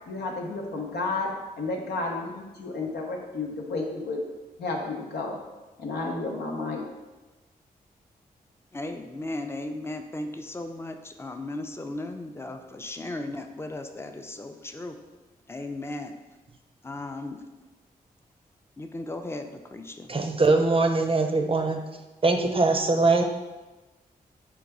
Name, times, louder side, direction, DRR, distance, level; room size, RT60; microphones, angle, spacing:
voice 1, 0.1-4.2 4.6-5.4 5.8-6.8, left 3 dB, 85° left, 0 dB, 0.7 m, -31 dB
voice 2, 8.7-15.0 15.5-16.2 16.8-17.4 18.8-20.1, left 2 dB, 15° left, 6 dB, 0.4 m, -36 dB
voice 3, 20.1-21.8 22.2-23.2, right 3 dB, 35° right, 4 dB, 0.5 m, -22 dB
3.9 x 2.3 x 4.6 m, 1.1 s
cardioid pair, 45°, 17 cm